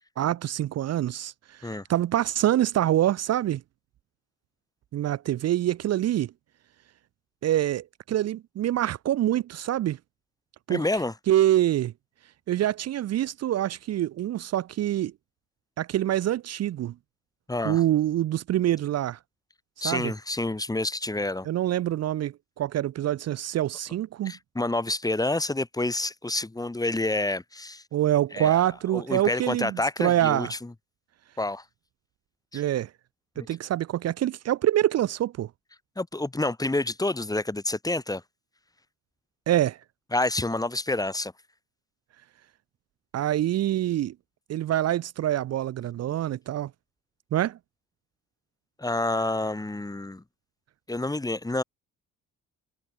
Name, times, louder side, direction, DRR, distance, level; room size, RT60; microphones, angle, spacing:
voice 1, 0.2-1.3 1.6-3.6 4.9-6.3 7.4-10.0 10.7-10.8 11.3-11.9 12.5-15.1 15.8-16.9 17.6-19.2 19.8-20.1 21.5-24.3 27.9-30.5 32.5-32.9 33.4-35.5 39.5-39.8 43.1-44.1 44.5-46.7 47.3-47.6, right 12 dB, 55° right, 0.6 m, -25 dB
voice 2, 10.7-11.1 17.5-17.8 19.8-21.5 24.3-27.8 28.3-28.7 28.9-30.7 31.4-31.6 32.5-32.6 33.4-33.5 36.0-38.2 40.1-41.3 48.8-50.2 50.9-51.6, left 2 dB, 10° left, 1.9 m, -28 dB
cardioid pair, 90°, 30 cm